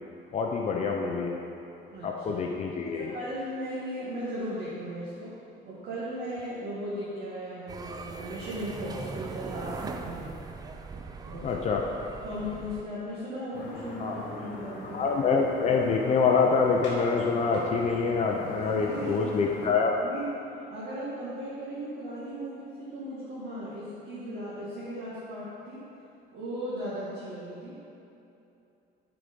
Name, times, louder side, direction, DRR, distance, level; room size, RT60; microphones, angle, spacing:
voice 1, 0.3-1.4 2.0-3.1 11.4-11.9 14.0-14.1 14.9-19.9, left 5 dB, 35° left, 0 dB, 0.6 m, -26 dB
voice 2, 1.9-2.4 2.8-5.4 5.6-10.3 11.2-11.6 12.2-15.1 18.7-19.4 20.0-20.3 20.7-25.8 26.3-27.8, equal, 60° right, -9 dB, 1.8 m, -37 dB
sound 1, 7.7-12.8, right 4 dB, 20° right, 0.4 m, -40 dB
sound 2, 13.5-19.7, left 2 dB, 65° left, 1.5 m, -41 dB
7.7 x 5.0 x 5.3 m, 2.8 s
cardioid pair, 160°, 19 cm